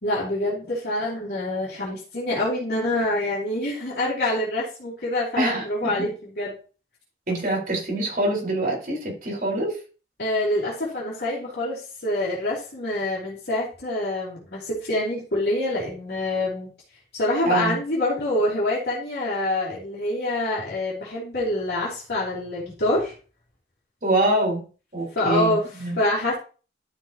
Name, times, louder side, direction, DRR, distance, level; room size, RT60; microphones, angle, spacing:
voice 1, 0.0-6.6 10.2-16.7 17.1-23.1 25.1-25.7 25.9-26.4, left 1 dB, 60° left, -6 dB, 3.2 m, -26 dB
voice 2, 5.4-6.1 7.3-9.8 17.4-17.8 24.0-24.6 24.9-26.0, right 2 dB, 50° right, -2 dB, 4.6 m, -25 dB
12.0 x 6.1 x 3.0 m, 0.36 s
head